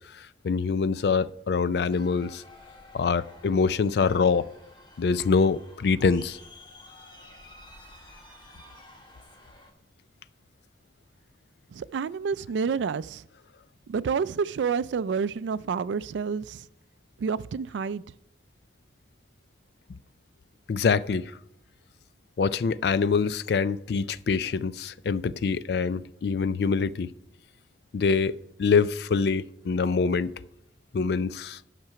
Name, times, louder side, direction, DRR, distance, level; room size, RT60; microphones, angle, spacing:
voice 1, 0.4-2.4 2.9-4.5 5.0-6.4 20.7-21.3 22.4-27.1 27.9-30.3 30.9-31.6, left 5 dB, 65° left, 0.4 m, -25 dB
sound 1, 1.9-9.7, left 2 dB, 25° left, 1.3 m, -51 dB
voice 2, 11.7-13.2 13.9-16.6 17.2-18.0, right 6 dB, 90° right, 0.3 m, -29 dB
10.5 x 6.0 x 5.7 m
head